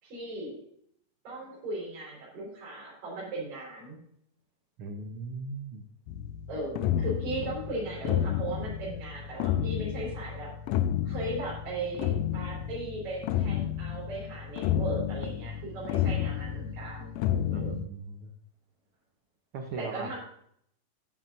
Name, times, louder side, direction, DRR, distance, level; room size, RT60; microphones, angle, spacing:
voice 1, 0.0-0.6 1.2-4.0 6.5-10.5 11.0-17.7 19.8-20.2, right 2 dB, 60° right, -6 dB, 5.7 m, -37 dB
voice 2, 4.8-5.8 17.5-18.3 19.5-20.2, right 4 dB, 85° right, 5 dB, 1.2 m, -38 dB
sound 1, 6.1-17.9, left 10 dB, 85° left, 2.1 m, -31 dB
13.5 x 9.0 x 2.6 m, 0.67 s
omnidirectional pair, 3.8 m